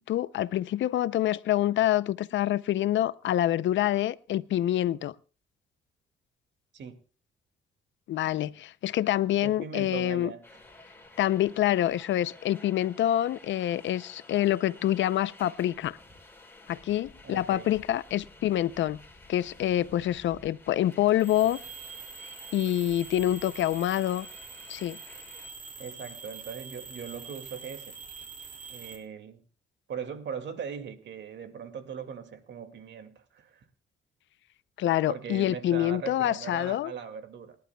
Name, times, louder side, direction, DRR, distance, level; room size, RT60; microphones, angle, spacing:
voice 1, 0.1-5.1 8.1-10.3 11.2-16.0 16.7-19.0 19.3-21.6 22.2-24.3 24.7-25.0 34.8-36.9, left 12 dB, 70° left, 0.6 m, -26 dB
voice 2, 9.4-10.4 17.2-17.7 20.0-20.1 25.8-27.9 28.7-29.4 29.9-33.6 35.1-37.6, right 7 dB, 65° right, 2.3 m, -39 dB
sound 1, 10.4-25.5, left 2 dB, 10° left, 4.3 m, -52 dB
sound 2, 20.9-29.0, right 5 dB, 40° right, 4.0 m, -44 dB
28.5 x 11.5 x 2.3 m
cardioid pair, 90°, 20 cm